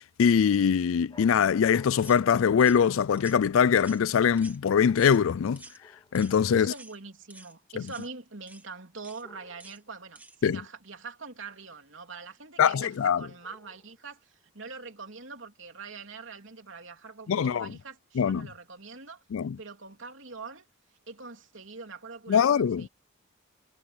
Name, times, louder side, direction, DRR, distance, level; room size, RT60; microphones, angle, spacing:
voice 1, 0.2-5.6 6.1-6.7 7.8-7.9 10.4-10.6 12.6-13.3 17.3-17.7 18.2-18.5 19.3-19.6 22.3-22.9, left 7 dB, 80° left, 0.4 m, -23 dB
sound 1, 1.1-3.6 4.8-5.4 5.8-6.3 9.2-9.9 13.4-14.1, left 1 dB, 20° left, 2.6 m, -57 dB
voice 2, 1.1-1.5 6.5-19.2 19.6-20.6 21.1-22.9, right 4 dB, 65° right, 3.4 m, -44 dB
sound 2, 2.0-2.2 2.6-2.8 3.2-3.4 3.8-4.1 4.4-4.6 5.0-5.2 5.5-5.8 6.1-6.4 6.7-7.0 7.3-7.5 7.9-8.1 8.5-8.7 9.0-9.2 9.6-9.8 10.2-10.4, right 2 dB, 10° right, 1.2 m, -49 dB
head